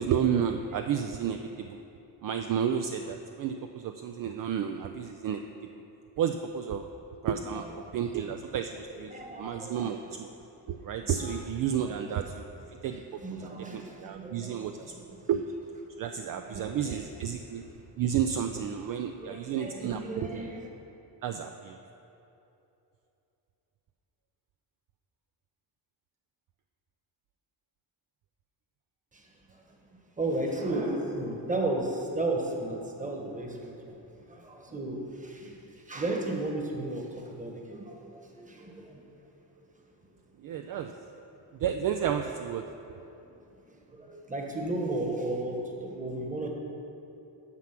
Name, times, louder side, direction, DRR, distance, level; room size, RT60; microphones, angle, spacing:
voice 1, 0.0-1.8 2.2-5.4 6.2-6.9 7.2-7.7 7.9-9.1 9.4-10.3 10.7-12.4 12.8-14.7 15.3-15.4 16.0-17.6 18.0-20.3 21.2-21.7 40.4-40.9 41.6-42.6, right 8 dB, 55° right, 6 dB, 0.5 m, -31 dB
voice 2, 7.4-8.4 8.7-10.2 10.9-11.4 11.9-12.1 12.6-15.3 16.3-17.2 18.9-20.7 29.1-29.6 30.2-39.0 43.0-43.1 43.7-46.5, right 2 dB, 20° right, 1 dB, 1.3 m, -35 dB
9.6 x 6.0 x 5.9 m, 2.9 s
cardioid pair, 120°, 42 cm